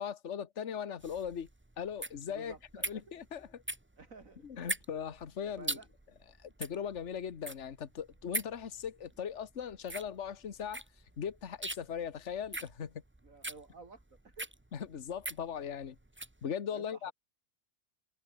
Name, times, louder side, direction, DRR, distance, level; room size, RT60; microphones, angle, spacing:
voice 1, 0.0-1.5 1.8-3.6 4.4-5.8 6.4-10.8 11.2-13.0 14.7-16.0 16.4-17.1, left 8 dB, 55° left, 1.6 m, -39 dB
sound 1, 1.0-16.4, right 1 dB, 10° right, 0.9 m, -42 dB
voice 2, 2.3-3.0 4.0-4.5 5.6-5.9 13.2-14.5 16.7-17.1, right 4 dB, 65° right, 3.2 m, -52 dB
omnidirectional pair, 1.5 m